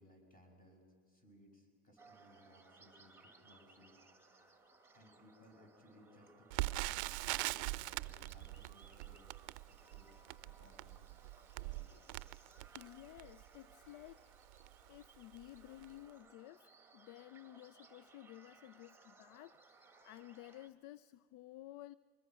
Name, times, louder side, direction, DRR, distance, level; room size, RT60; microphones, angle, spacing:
voice 1, 0.0-4.0 4.3-4.7 4.9-10.1 10.4-11.1 11.6-12.0, left 1 dB, 25° left, 2 dB, 6.6 m, -64 dB
sound 1, 2.0-20.7, right 3 dB, 5° right, 1.8 m, -64 dB
Crackle, 6.5-13.5 14.1-14.2 14.5-14.7 15.3-15.6 15.8-15.9, right 21 dB, 75° right, 0.6 m, -42 dB
voice 2, 12.7-14.2 14.9-21.9, left 15 dB, 60° left, 20 dB, 0.5 m, -54 dB
25.0 x 21.0 x 6.2 m, 2.2 s
supercardioid pair, 90°, 33 cm